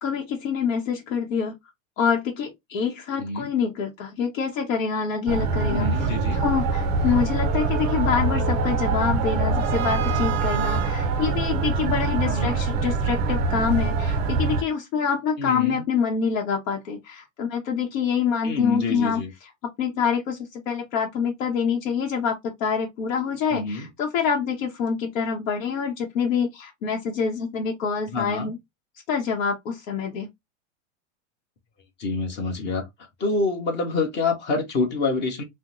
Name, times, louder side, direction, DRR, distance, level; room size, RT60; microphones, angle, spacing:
voice 1, 0.0-1.5 2.0-19.5 19.8-20.4 20.7-28.6 29.1-30.3, left 6 dB, 75° left, 0.9 m, -26 dB
voice 2, 3.2-3.5 5.7-6.4 12.2-12.6 15.4-15.8 18.4-19.3 23.5-23.9 28.1-28.5 32.0-32.9 33.2-35.4, left 3 dB, 25° left, 1.1 m, -27 dB
sound 1, 5.3-14.6, right 4 dB, 25° right, 0.4 m, -24 dB
3.5 x 2.1 x 2.9 m
supercardioid pair, 145°, 40 cm